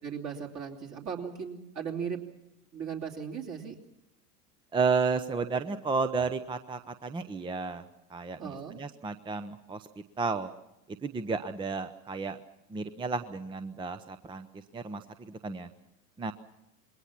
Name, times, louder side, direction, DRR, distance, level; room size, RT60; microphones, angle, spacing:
voice 1, 0.0-2.2 2.7-3.8 8.4-8.8, right 7 dB, 35° right, 1 dB, 3.0 m, -37 dB
voice 2, 4.7-7.8 8.1-9.9 10.2-10.5 11.0-12.4 12.7-14.5 14.7-15.7 16.2-16.3, right 4 dB, 10° right, 11 dB, 0.7 m, -32 dB
27.0 x 21.5 x 5.9 m, 0.89 s
figure-of-eight pair, 85°, 48 cm